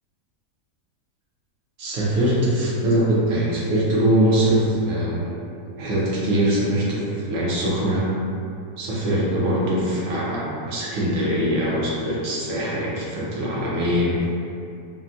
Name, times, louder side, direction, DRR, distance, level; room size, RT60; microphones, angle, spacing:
voice 1, 1.8-5.3 5.8-8.1 8.8-14.2, right 1 dB, 65° right, -6 dB, 0.8 m, -22 dB
3.4 x 2.1 x 2.5 m, 2.6 s
omnidirectional pair, 1.8 m